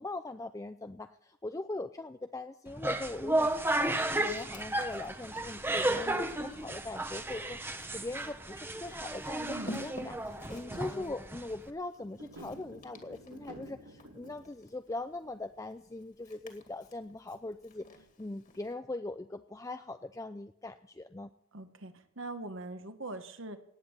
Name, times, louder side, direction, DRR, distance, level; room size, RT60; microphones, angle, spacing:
voice 1, 0.0-21.3, left 2 dB, 15° left, 9 dB, 0.4 m, -41 dB
sound 1, 2.7-11.7, right 1 dB, 10° right, 0.9 m, -33 dB
Walk footsteps, 3.7-18.7, left 1 dB, 35° left, 2.2 m, -52 dB
voice 2, 9.4-9.8 10.7-11.1 21.5-23.6, right 2 dB, 60° right, 8 dB, 1.4 m, -43 dB
sound 2, 12.0-14.5, right 1 dB, 90° right, 6.3 m, -50 dB
18.5 x 8.6 x 7.1 m, 0.78 s
head